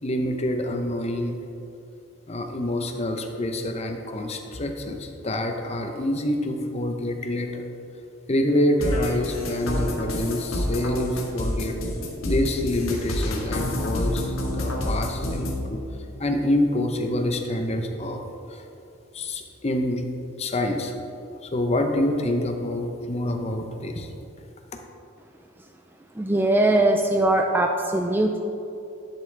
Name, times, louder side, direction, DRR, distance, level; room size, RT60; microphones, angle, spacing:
voice 1, 0.0-1.4 2.3-7.6 8.3-11.8 12.2-15.8 16.2-18.2 18.5-18.6 19.1-20.1 20.4-20.9 21.4-24.1, left 1 dB, 30° left, 4 dB, 0.7 m, -26 dB
sound 1, 8.8-15.5, left 1 dB, 80° left, 1.4 m, -28 dB
voice 2, 26.2-28.4, right 1 dB, 10° right, 3 dB, 0.3 m, -21 dB
11.0 x 7.1 x 3.4 m, 2.8 s
head